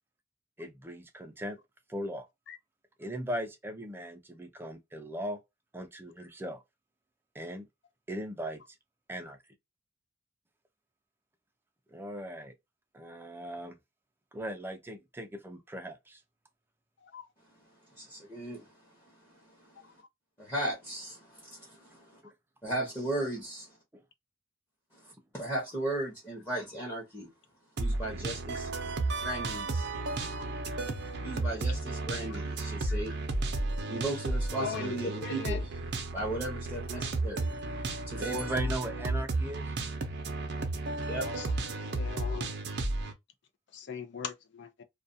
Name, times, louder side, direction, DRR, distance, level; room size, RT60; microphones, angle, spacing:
voice 1, 0.6-1.6 1.9-2.3 3.0-5.4 5.7-6.6 7.3-7.7 8.1-8.6 9.1-9.4 11.9-12.5 12.9-13.8 14.3-16.2 22.2-22.3 23.9-24.0 38.2-39.7, right 1 dB, 10° right, 0.4 m, -38 dB
voice 2, 17.9-18.7 19.2-19.9 20.4-22.2 22.6-23.7 24.9-27.3 27.8-28.7 29.2-29.9 31.2-33.1 33.9-35.8 36.0-38.5 41.0-41.3, right 1 dB, 15° left, 0.8 m, -36 dB
sound 1, 27.8-43.1, right 2 dB, 55° right, 0.6 m, -33 dB
voice 3, 34.6-35.6 41.2-41.5 41.9-42.5 43.7-44.8, left 6 dB, 60° left, 0.5 m, -39 dB
2.3 x 2.2 x 2.6 m
head